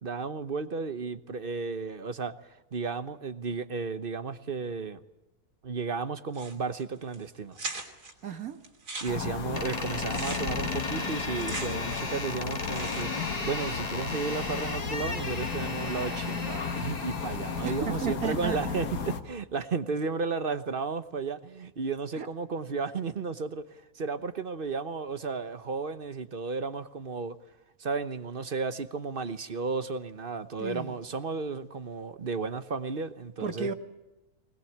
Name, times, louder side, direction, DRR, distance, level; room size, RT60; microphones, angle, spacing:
voice 1, 0.0-2.3 2.7-5.0 5.6-7.6 9.0-27.4 27.8-33.7, right 4 dB, 40° right, 11 dB, 1.1 m, -33 dB
sound 1, 6.3-6.8 7.1-7.2 7.5-8.1 8.6-12.2 12.5-13.3, right 3 dB, 90° right, 3.5 m, -40 dB
voice 2, 8.2-8.6 11.0-11.1 17.6-18.7 22.1-22.3 30.6-31.0 33.4-33.7, right 6 dB, 65° right, 8 dB, 2.0 m, -34 dB
sound 2, 9.1-19.2, left 6 dB, 90° left, 2.0 m, -34 dB
Door, 9.5-18.0, left 2 dB, 25° left, 1.7 m, -37 dB
23.0 x 20.0 x 8.6 m, 0.98 s
omnidirectional pair, 1.7 m